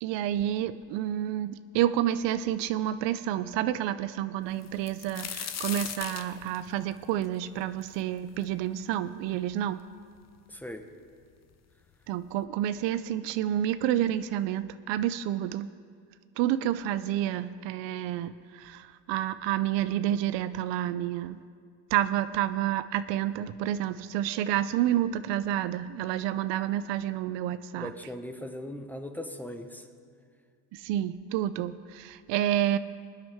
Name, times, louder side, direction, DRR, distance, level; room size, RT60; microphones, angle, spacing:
voice 1, 0.0-9.8 12.1-15.7 16.4-21.4 21.9-27.9 30.7-32.8, right 12 dB, 70° right, 13 dB, 0.6 m, -29 dB
sound 1, 4.6-8.4 8.9-9.0 9.8-9.9 10.1-10.8 11.7-11.8 12.2-12.4, left 8 dB, 35° left, 0.8 m, -38 dB
voice 2, 10.5-10.8 27.8-29.9, left 1 dB, 5° left, 6 dB, 1.1 m, -39 dB
24.0 x 8.6 x 3.5 m, 2.2 s
supercardioid pair, 85°, 45 cm